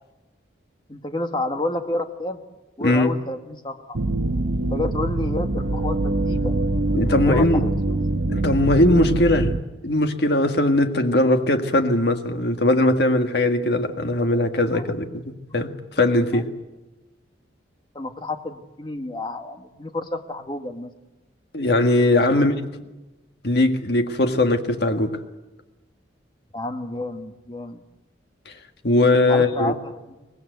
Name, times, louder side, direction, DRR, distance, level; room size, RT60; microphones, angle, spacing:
voice 1, 0.9-2.4 2.8-4.0 4.6-6.5 7.1-8.0 14.7-14.8 16.3-16.4 17.9-20.9 22.1-22.9 26.5-27.8 29.3-30.3, left 2 dB, 25° left, 6 dB, 1.6 m, -30 dB
voice 2, 2.8-3.1 6.9-7.6 8.3-9.5 9.8-15.2 15.5-15.7 16.0-16.5 21.5-22.5 23.4-25.1 28.5-28.6 28.8-29.7, left 1 dB, 60° left, 6 dB, 1.8 m, -19 dB
sound 1, 3.9-9.6, right 2 dB, 90° right, 1.1 m, -24 dB
24.0 x 19.5 x 8.1 m, 1.1 s
head